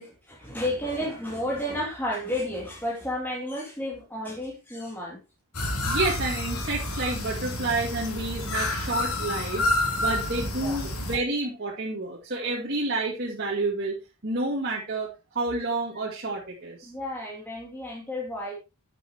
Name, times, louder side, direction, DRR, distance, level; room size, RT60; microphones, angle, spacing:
voice 1, 0.0-5.2 10.5-10.8 16.8-18.5, left 1 dB, 10° left, -5 dB, 2.9 m, -32 dB
sound 1, 5.5-11.2, left 2 dB, 85° left, 3.6 m, -29 dB
voice 2, 5.9-9.7 10.0-13.9 14.2-16.9, right 2 dB, 50° right, -4 dB, 2.5 m, -29 dB
10.5 x 9.2 x 3.0 m, 0.27 s
head